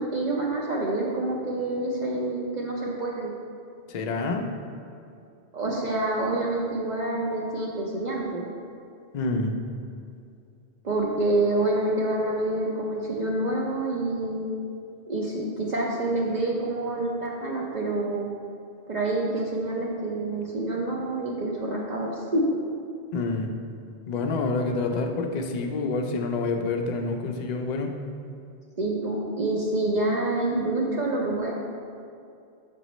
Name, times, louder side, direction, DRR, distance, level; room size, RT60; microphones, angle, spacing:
voice 1, 0.0-3.3 5.5-8.5 10.8-14.5 15.1-18.3 18.9-22.4 28.8-31.5, right 2 dB, 50° right, -4 dB, 0.6 m, -27 dB
voice 2, 3.9-4.5 9.1-9.5 23.1-23.5 24.1-27.9, left 3 dB, 55° left, 3 dB, 0.5 m, -27 dB
6.1 x 5.0 x 3.0 m, 2.5 s
omnidirectional pair, 1.1 m